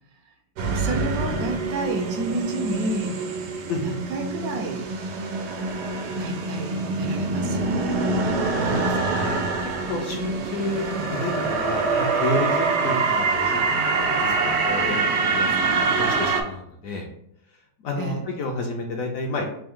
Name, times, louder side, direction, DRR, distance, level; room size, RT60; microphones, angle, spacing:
sound 1, 0.6-16.4, right 3 dB, 90° right, 1.2 m, -25 dB
voice 1, 0.7-3.2 3.8-4.9 6.2-7.9 18.0-18.2, right 2 dB, 70° right, 3 dB, 1.0 m, -30 dB
voice 2, 8.6-9.4 9.9-14.4 14.7-15.0 15.3-17.1 17.8-19.4, left 2 dB, 70° left, 1 dB, 0.9 m, -31 dB
3.4 x 2.6 x 3.5 m, 0.73 s
omnidirectional pair, 1.8 m